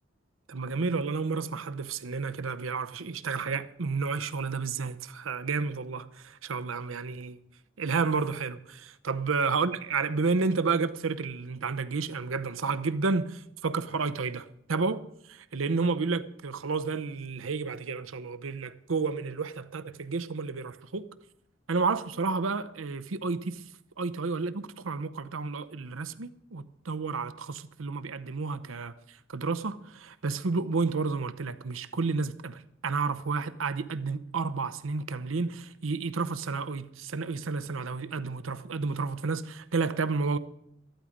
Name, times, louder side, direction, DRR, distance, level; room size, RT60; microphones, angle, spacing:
voice 1, 0.5-7.4 7.8-21.1 21.7-23.6 24.0-40.4, right 4 dB, 85° right, 0.7 m, -31 dB
14.0 x 11.5 x 5.1 m
head